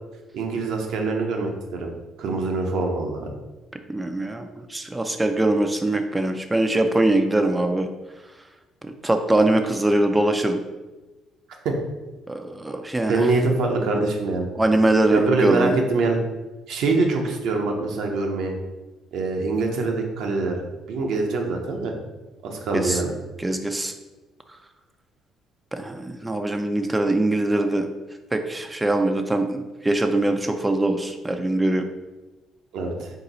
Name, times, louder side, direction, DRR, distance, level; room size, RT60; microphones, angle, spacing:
voice 1, 0.3-1.9 2.2-3.3 11.6-11.7 13.1-14.5 15.1-16.2 16.7-18.5 19.1-20.6 20.9-21.9 22.4-23.1 32.7-33.1, right 3 dB, 70° right, 2 dB, 0.6 m, -24 dB
voice 2, 3.9-7.9 8.8-10.6 12.3-13.3 14.6-15.8 22.7-23.0 23.4-23.9 25.7-27.9 28.3-31.8, right 2 dB, 15° right, 5 dB, 0.4 m, -22 dB
3.9 x 2.7 x 3.9 m, 1.2 s
supercardioid pair, 60°, 0 cm